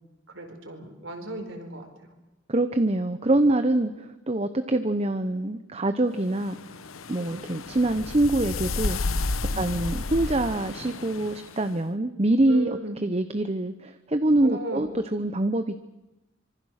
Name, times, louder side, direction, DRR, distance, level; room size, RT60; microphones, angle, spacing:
voice 1, 0.3-1.9 7.2-7.4 9.5-9.7 12.5-13.0 14.4-14.9, right 2 dB, 70° right, 4 dB, 4.6 m, -36 dB
voice 2, 2.5-6.6 7.1-9.0 9.6-15.8, right 1 dB, 30° right, 9 dB, 0.8 m, -25 dB
sound 1, 6.3-11.6, left 3 dB, 90° left, 1.0 m, -32 dB
25.5 x 25.0 x 6.5 m, 1.0 s
head